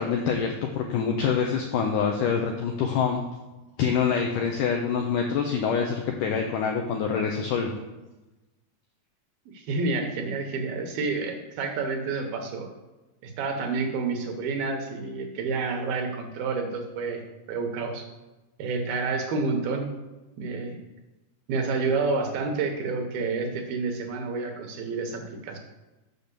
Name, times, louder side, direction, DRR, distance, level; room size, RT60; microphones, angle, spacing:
voice 1, 0.0-3.2 3.8-7.7, left 6 dB, 85° left, 2 dB, 1.8 m, -26 dB
voice 2, 9.5-12.7 13.2-18.1 18.6-19.9 20.4-20.8 21.5-25.6, right 4 dB, 75° right, 4 dB, 2.7 m, -29 dB
6.9 x 5.9 x 6.8 m, 1.1 s
omnidirectional pair, 4.6 m